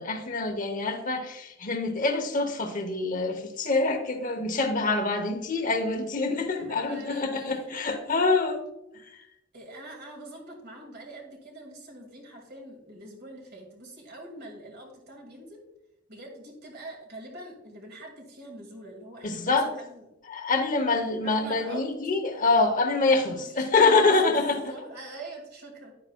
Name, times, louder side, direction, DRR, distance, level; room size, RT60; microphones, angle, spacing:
voice 1, 0.0-8.6 8.9-9.3 19.2-19.7 20.3-24.7, left 3 dB, 40° left, 5 dB, 0.8 m, -25 dB
voice 2, 6.5-7.8 9.5-15.6 16.1-20.1 21.2-21.9 23.3-24.1 24.6-25.9, right 1 dB, 50° right, 1 dB, 2.1 m, -44 dB
10.5 x 9.0 x 2.3 m, 0.90 s
head